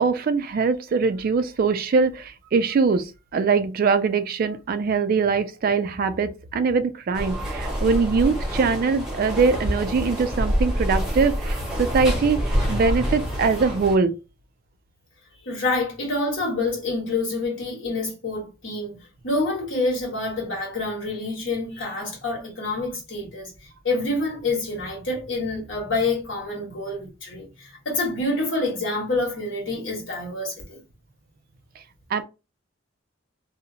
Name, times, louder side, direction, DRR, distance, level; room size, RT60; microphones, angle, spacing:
voice 1, 0.0-14.2 32.1-32.2, right 5 dB, 50° right, 0.3 m, -22 dB
sound 1, 7.1-14.0, equal, 5° right, 0.8 m, -26 dB
voice 2, 15.4-19.0 19.2-23.5 23.8-30.8, left 2 dB, 70° left, 1.4 m, -27 dB
2.7 x 2.1 x 2.7 m
head